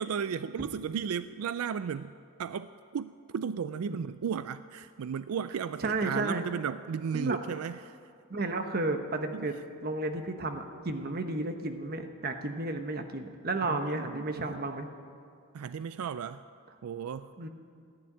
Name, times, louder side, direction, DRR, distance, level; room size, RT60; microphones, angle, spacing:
voice 1, 0.0-2.1 2.4-8.0 9.3-9.5 13.6-14.6 15.5-16.4 16.8-17.3, right 7 dB, 90° right, 14 dB, 0.4 m, -35 dB
voice 2, 5.8-6.4 7.1-7.4 8.3-9.5 9.8-14.9 17.4-17.5, right 2 dB, 45° right, 7 dB, 1.1 m, -32 dB
15.0 x 10.5 x 8.6 m, 2.3 s
head